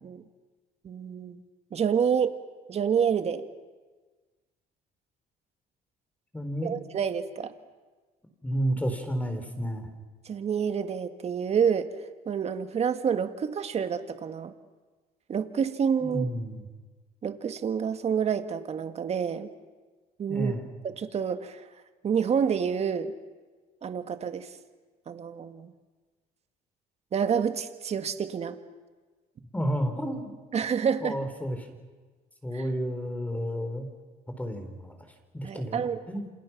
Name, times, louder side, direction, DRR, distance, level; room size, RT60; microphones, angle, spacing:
voice 1, 0.8-1.4 1.7-2.3 2.7-3.4 6.6-7.5 10.3-11.9 12.3-14.5 15.3-16.3 17.2-19.5 20.2-20.5 20.8-21.7 22.0-23.1 23.8-24.6 25.1-25.7 27.1-28.6 30.5-31.2 32.5-32.7 35.4-36.0, right 7 dB, 40° right, 9 dB, 1.9 m, -28 dB
voice 2, 6.3-6.8 8.4-9.9 16.0-16.6 20.3-20.6 29.5-30.3 31.0-31.7 32.4-33.9 34.4-35.0 35.3-36.3, equal, 10° left, 7 dB, 4.1 m, -31 dB
28.5 x 27.0 x 6.1 m, 1.3 s
cardioid pair, 115°, 16 cm